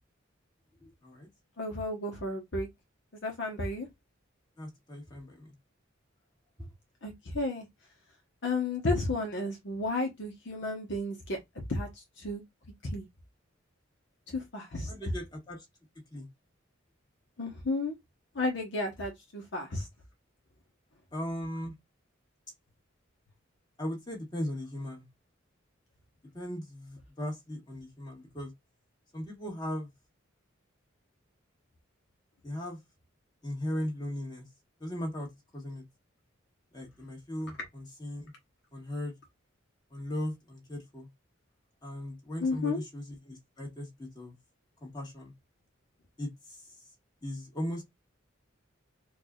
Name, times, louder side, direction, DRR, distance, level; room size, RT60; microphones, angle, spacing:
voice 1, 0.8-1.3 4.6-5.5 14.9-15.6 16.1-16.3 21.1-21.7 23.8-25.0 26.3-28.5 29.1-29.9 32.4-32.8 33.4-34.4 34.8-35.8 36.7-38.3 38.7-39.1 39.9-41.1 41.8-44.3 44.8-45.3 46.2-46.7 47.2-47.8, left 1 dB, 20° left, 1.7 m, -38 dB
voice 2, 1.6-2.7 3.1-3.9 7.0-7.7 8.4-11.4 11.7-12.4 12.8-13.0 14.3-14.9 17.4-17.9 18.3-19.9 42.4-42.8, left 2 dB, 60° left, 1.0 m, -32 dB
4.6 x 2.5 x 2.3 m
head